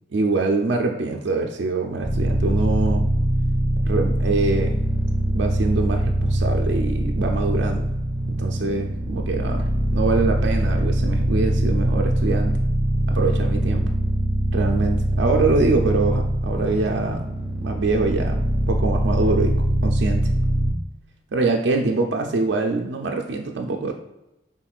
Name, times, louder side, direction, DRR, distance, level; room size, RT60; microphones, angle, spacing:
voice 1, 0.1-3.1 3.9-4.8 5.3-7.9 8.3-12.6 13.1-13.9 14.5-17.2 17.6-18.4 18.7-19.6 19.8-20.3 21.3-23.9, right 3 dB, 75° right, 2 dB, 0.4 m, -24 dB
sound 1, 2.0-20.7, right 1 dB, ahead, 1.3 m, -22 dB
5.9 x 3.7 x 2.4 m, 0.94 s
head